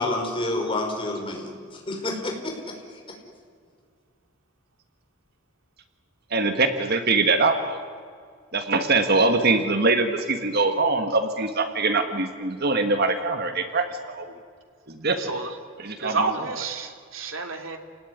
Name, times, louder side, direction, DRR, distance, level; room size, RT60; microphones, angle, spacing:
voice 1, 0.0-3.0, left 2 dB, 25° left, 1 dB, 4.9 m, -29 dB
voice 2, 6.3-7.8 8.5-14.3 14.9-15.3 15.8-16.6, right 3 dB, 50° right, 7 dB, 1.7 m, -23 dB
voice 3, 15.2-15.5 16.0-17.8, right 4 dB, 70° right, 4 dB, 2.9 m, -29 dB
29.5 x 19.0 x 9.7 m, 2.1 s
head